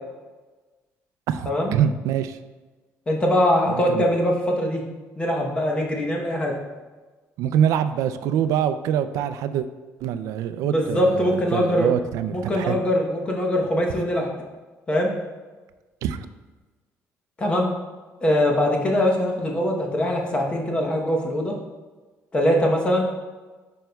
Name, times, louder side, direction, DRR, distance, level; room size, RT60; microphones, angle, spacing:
voice 1, 1.3-2.4 3.9-4.0 7.4-9.7 10.0-12.8 16.0-16.3, right 9 dB, 80° right, 11 dB, 0.3 m, -24 dB
voice 2, 3.1-4.8 5.2-6.5 10.6-11.9 12.3-14.3 14.9-15.1 17.4-17.7 18.2-21.5 22.3-23.0, left 1 dB, 20° left, 0 dB, 0.9 m, -22 dB
8.9 x 5.3 x 2.3 m, 1.3 s
cardioid pair, 160°, 5 cm